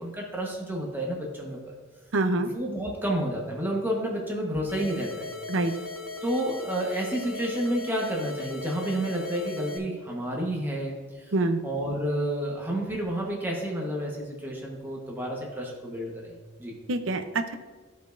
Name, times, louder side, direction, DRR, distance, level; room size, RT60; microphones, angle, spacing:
voice 1, 0.0-1.6 2.4-5.3 6.2-11.3 11.6-16.8, right 1 dB, 10° right, -2 dB, 1.2 m, -30 dB
voice 2, 2.1-2.5 5.5-5.7 11.3-11.6 16.9-17.5, right 2 dB, 65° right, 7 dB, 0.7 m, -25 dB
sound 1, 4.7-9.8, left 3 dB, 75° left, 0.9 m, -38 dB
14.0 x 5.2 x 2.6 m, 1.3 s
head